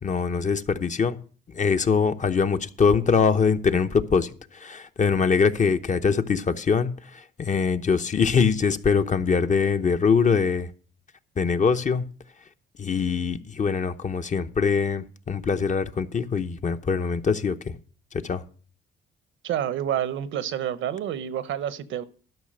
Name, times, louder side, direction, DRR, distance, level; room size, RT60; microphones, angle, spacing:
voice 1, 0.0-1.2 1.5-10.7 11.4-12.0 12.8-17.8 18.2-18.4, left 5 dB, 40° left, 0.9 m, -23 dB
voice 2, 19.4-22.0, right 10 dB, 80° right, 0.9 m, -28 dB
12.0 x 5.8 x 7.6 m
cardioid pair, 90°, 20 cm